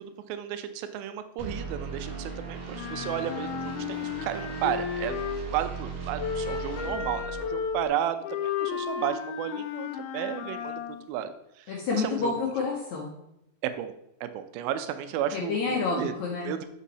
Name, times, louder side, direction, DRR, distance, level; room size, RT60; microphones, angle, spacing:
voice 1, 0.0-5.1 5.5-12.3 13.6-13.9 14.2-16.1 16.4-16.7, right 10 dB, 85° right, 10 dB, 2.3 m, -33 dB
sound 1, 1.4-7.9, right 4 dB, 35° right, 2.0 m, -38 dB
Wind instrument woodwind instrument, 2.7-5.6 6.2-11.0, left 7 dB, 90° left, 2.6 m, -33 dB
voice 2, 11.7-13.1 15.3-16.5, left 4 dB, 70° left, -1 dB, 1.8 m, -29 dB
7.2 x 5.4 x 4.1 m, 0.81 s
omnidirectional pair, 4.3 m